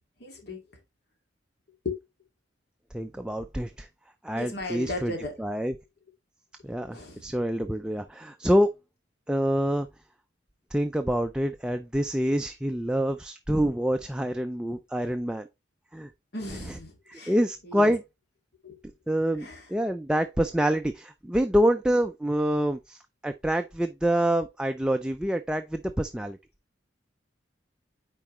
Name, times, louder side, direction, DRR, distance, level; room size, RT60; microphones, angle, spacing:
voice 1, 0.2-0.6 1.8-2.0 4.3-5.3 6.9-7.3 16.3-17.4 17.6-17.9 18.6-18.8 19.4-19.6, left 2 dB, 60° left, 2.2 m, -36 dB
voice 2, 2.9-3.9 4.2-5.7 6.6-8.7 9.3-9.9 10.7-15.5 15.9-16.1 16.7-16.8 17.1-18.0 19.1-26.4, equal, 5° right, 0.4 m, -26 dB
8.6 x 4.5 x 3.1 m
head